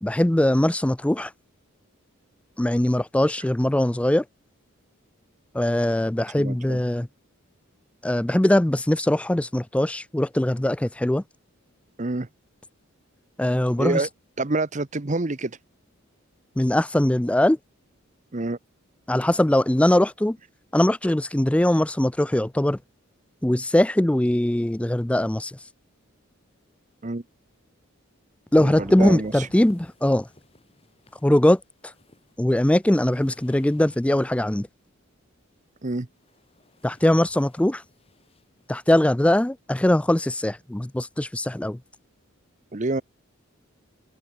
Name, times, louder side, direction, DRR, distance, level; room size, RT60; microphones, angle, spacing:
voice 1, 0.0-1.3 2.6-4.2 5.5-7.1 8.0-11.2 13.4-14.0 16.6-17.6 19.1-20.4 20.7-22.8 23.4-25.6 28.5-30.3 31.2-31.6 32.4-34.7 36.8-37.8 38.7-41.8, left 1 dB, 5° left, 0.3 m, -21 dB
voice 2, 6.4-6.8 12.0-12.3 13.8-14.1 14.4-15.6 18.3-18.6 27.0-27.2 28.6-29.5 35.8-36.1 42.7-43.0, right 2 dB, 35° right, 0.9 m, -27 dB
sound 1, 28.8-34.4 35.5-39.0, left 1 dB, 25° left, 5.0 m, -56 dB
head